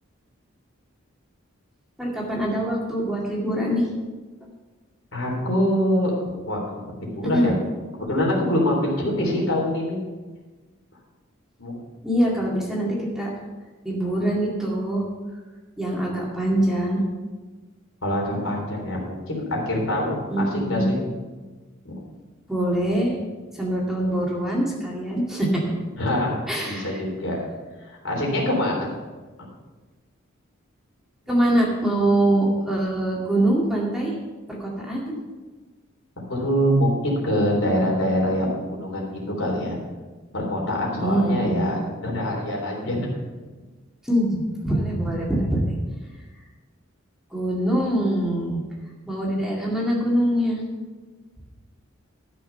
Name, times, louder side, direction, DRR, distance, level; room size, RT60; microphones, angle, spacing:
voice 1, 2.0-3.9 7.3-7.5 12.0-13.3 13.8-15.1 15.8-17.0 20.3-20.9 22.5-23.1 23.6-25.6 26.5-27.0 31.3-34.1 34.5-35.1 41.0-41.7 44.0-45.8 47.3-48.6 49.1-50.6, right 1 dB, ahead, -4 dB, 2.2 m, -23 dB
voice 2, 5.1-6.1 6.5-6.6 7.0-7.5 7.9-10.0 11.6-11.8 18.0-21.0 21.8-21.9 26.0-26.4 26.6-27.4 27.8-28.9 36.3-38.5 38.8-39.8 40.3-43.1, equal, 70° left, -2 dB, 3.8 m, -24 dB
13.5 x 6.5 x 5.7 m, 1.3 s
head